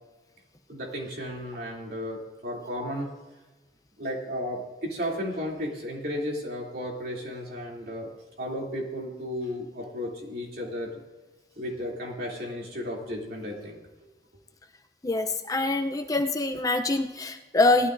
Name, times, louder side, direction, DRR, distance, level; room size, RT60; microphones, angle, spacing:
voice 1, 0.7-3.1 4.0-8.1 8.4-11.0 11.6-13.8, equal, 60° right, -2 dB, 3.0 m, -34 dB
voice 2, 15.0-17.9, left 2 dB, 20° left, 5 dB, 0.6 m, -25 dB
18.5 x 13.0 x 2.6 m, 1.1 s
head